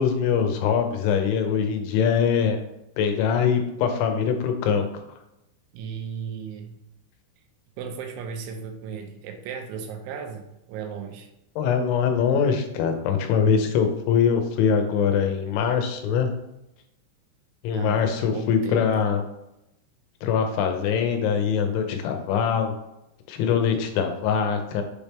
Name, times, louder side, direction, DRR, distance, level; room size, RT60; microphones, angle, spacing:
voice 1, 0.0-2.6 3.0-4.9 11.6-16.3 17.6-19.2 20.2-22.7 23.3-24.8, left 7 dB, 80° left, 5 dB, 3.0 m, -23 dB
voice 2, 5.7-6.8 7.8-11.3 17.7-19.0, right 7 dB, 80° right, 4 dB, 3.1 m, -35 dB
7.4 x 4.3 x 3.5 m, 0.88 s
omnidirectional pair, 5.5 m